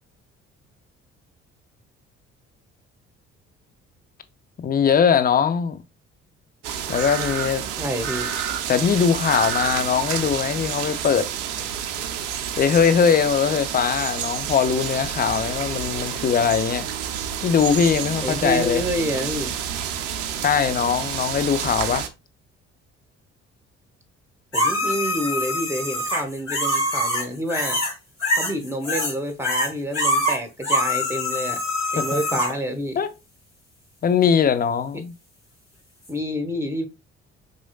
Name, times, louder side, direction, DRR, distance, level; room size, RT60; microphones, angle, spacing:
voice 1, 4.6-5.8 6.9-7.6 8.7-11.3 12.6-16.9 17.4-18.8 20.4-22.1 32.0-32.2 33.0-33.1 34.0-35.1, left 7 dB, 25° left, 0.5 m, -21 dB
sound 1, 6.6-22.1, right 9 dB, 75° right, 0.5 m, -29 dB
voice 2, 7.8-8.3 18.2-19.6 24.5-27.8 28.4-31.6 31.9-33.0 36.1-36.9, equal, 5° right, 0.8 m, -28 dB
sound 2, 24.5-27.9 28.2-29.1 29.4-32.5 36.1-36.2, left 1 dB, 85° left, 1.5 m, -24 dB
3.9 x 3.1 x 2.2 m
figure-of-eight pair, 45°, 36 cm